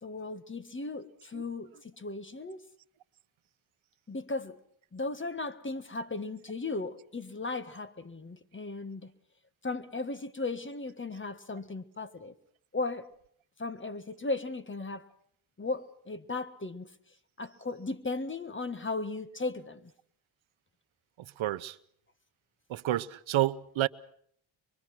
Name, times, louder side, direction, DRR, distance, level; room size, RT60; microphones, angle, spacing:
voice 1, 0.0-2.6 4.1-4.6 4.9-9.1 9.6-12.3 12.7-13.1 13.6-15.1 15.6-16.9 17.4-19.9, left 3 dB, 25° left, 1.6 m, -36 dB
voice 2, 21.4-21.8 22.7-23.9, right 14 dB, 75° right, 0.9 m, -29 dB
24.5 x 23.5 x 6.0 m
cardioid pair, 85°, 48 cm